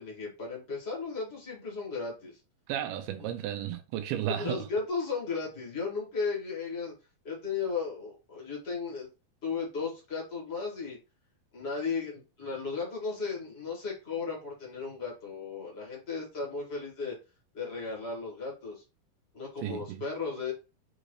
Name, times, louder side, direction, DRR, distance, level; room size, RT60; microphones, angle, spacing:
voice 1, 0.0-2.4 4.3-6.9 7.2-9.1 9.4-11.0 11.5-17.2 17.5-18.8 19.3-20.5, left 4 dB, 45° left, 0.7 m, -35 dB
voice 2, 2.7-4.7 19.6-20.0, right 11 dB, 90° right, 2.5 m, -33 dB
6.3 x 2.6 x 3.1 m
omnidirectional pair, 4.4 m